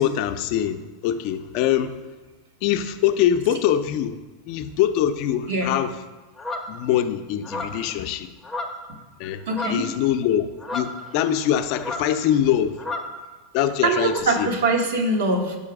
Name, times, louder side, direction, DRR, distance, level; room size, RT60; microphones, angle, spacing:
voice 1, 0.0-2.0 2.6-4.2 4.5-6.0 6.7-8.3 9.2-9.4 9.7-12.8 13.5-14.5, left 10 dB, 55° left, 9 dB, 0.4 m, -23 dB
sound 1, 6.4-6.7 7.4-7.9 8.4-9.0 9.2-9.9 10.6-11.5 11.8-12.2 12.8-13.2 14.1-14.2, left 2 dB, 5° left, 0.6 m, -32 dB
voice 2, 9.5-9.8 13.8-15.6, right 2 dB, 80° right, 3 dB, 1.0 m, -22 dB
5.5 x 5.0 x 4.7 m, 1.2 s
supercardioid pair, 135°, 0 cm